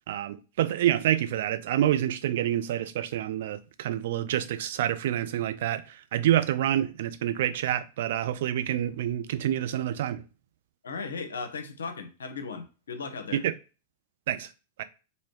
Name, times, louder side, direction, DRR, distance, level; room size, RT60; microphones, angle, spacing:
voice 1, 0.1-10.2 13.3-13.5 14.3-14.5 14.8-14.9, right 11 dB, 60° right, 0.3 m, -27 dB
voice 2, 10.8-13.4, left 4 dB, 75° left, 0.6 m, -37 dB
3.1 x 2.7 x 3.1 m
figure-of-eight pair, 95°, 0 cm